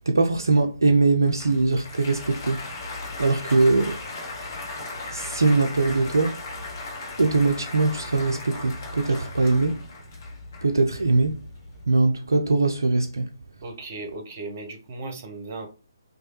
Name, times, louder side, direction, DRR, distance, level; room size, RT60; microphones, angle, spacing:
voice 1, 0.1-2.6 3.2-4.0 5.1-6.4 7.2-9.8 10.6-11.4 11.9-13.3, right 3 dB, 65° right, 0.3 m, -21 dB
Applause, 1.2-11.8, left 3 dB, 40° left, 1.0 m, -37 dB
voice 2, 13.6-15.7, right 2 dB, 35° right, 0.7 m, -36 dB
3.1 x 2.2 x 2.9 m
figure-of-eight pair, 140°, 2 cm